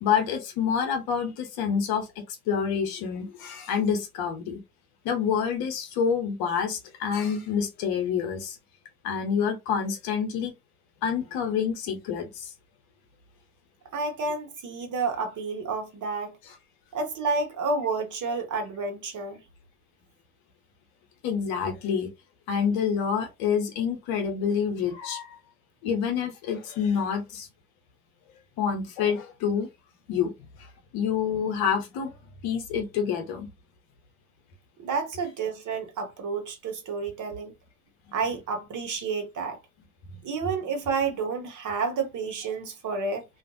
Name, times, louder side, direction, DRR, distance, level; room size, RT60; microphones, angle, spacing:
voice 1, 0.0-4.6 5.0-8.6 9.0-10.5 11.0-12.5 16.5-16.6 21.2-22.1 22.5-25.4 25.8-27.5 28.6-29.7 30.1-30.3 30.6-32.1 32.4-33.5 40.1-40.2, left 7 dB, 70° left, 1.0 m, -27 dB
voice 2, 13.9-16.4 16.9-19.4 34.8-37.5 38.1-39.6 40.2-43.2, right 4 dB, 50° right, 1.0 m, -30 dB
2.5 x 2.4 x 2.6 m
hypercardioid pair, 55°, 39 cm